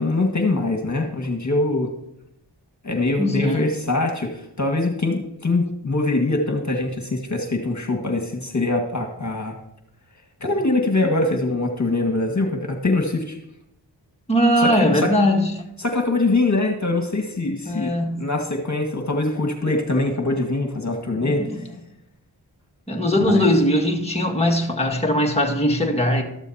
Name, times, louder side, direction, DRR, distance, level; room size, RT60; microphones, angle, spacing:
voice 1, 0.0-1.9 2.8-9.6 10.4-13.4 14.6-15.1 15.8-21.6 23.2-23.5, left 2 dB, 40° left, 1.8 m, -23 dB
voice 2, 3.2-3.7 14.3-15.6 17.7-18.3 21.2-21.7 22.9-26.2, equal, 15° left, 1.9 m, -20 dB
13.0 x 12.5 x 2.9 m
cardioid pair, 45°, 44 cm